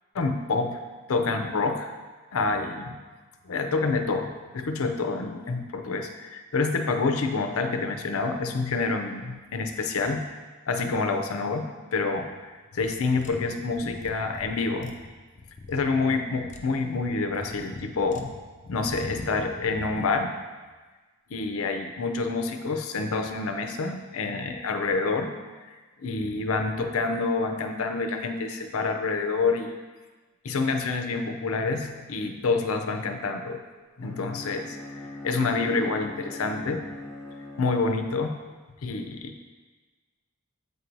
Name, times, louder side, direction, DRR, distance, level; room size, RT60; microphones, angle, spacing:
voice 1, 0.1-0.8 1.1-1.9 2.3-3.0 3.5-10.2 10.7-14.9 15.7-18.3 18.6-20.3 21.3-25.3 25.7-29.7 30.4-33.6 34.0-36.8 37.6-38.3 38.8-39.3, left 3 dB, 80° left, 5 dB, 0.6 m, -27 dB
sound 1, 12.8-20.1, left 2 dB, 35° left, 0.4 m, -43 dB
Bowed string instrument, 34.0-38.2, left 2 dB, 10° left, 1.0 m, -41 dB
7.9 x 2.7 x 4.5 m, 1.3 s
head